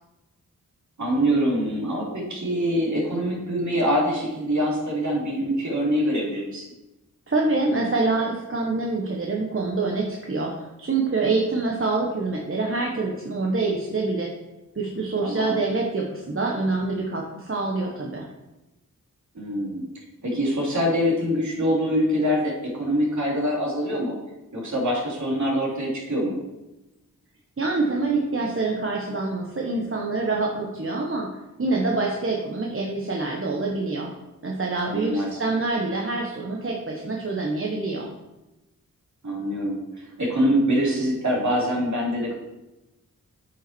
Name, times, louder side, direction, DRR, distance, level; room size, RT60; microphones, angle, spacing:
voice 1, 1.0-6.7 15.2-15.6 19.3-19.9 20.2-24.1 24.5-26.4 34.8-35.3 39.2-42.4, equal, 55° right, -4 dB, 3.2 m, -24 dB
voice 2, 7.3-14.3 14.7-18.3 27.6-34.1 34.4-38.1, right 3 dB, 40° right, -1 dB, 1.3 m, -26 dB
8.6 x 5.8 x 4.5 m, 1.0 s
cardioid pair, 60°, 34 cm